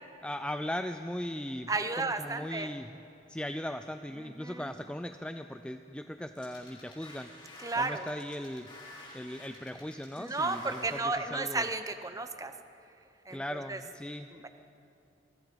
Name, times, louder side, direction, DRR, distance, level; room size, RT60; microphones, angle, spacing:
voice 1, 0.2-1.7 2.0-3.0 3.3-7.3 7.8-8.7 9.1-11.7 13.3-14.3, left 1 dB, 5° left, 8 dB, 0.5 m, -38 dB
voice 2, 1.7-2.7 4.2-4.7 7.6-8.1 10.2-12.5 13.3-13.8 14.3-14.5, right 3 dB, 20° right, 8 dB, 1.0 m, -33 dB
sound 1, 6.4-11.0, left 2 dB, 25° left, 5.6 m, -50 dB
29.0 x 23.0 x 5.3 m, 2.7 s
head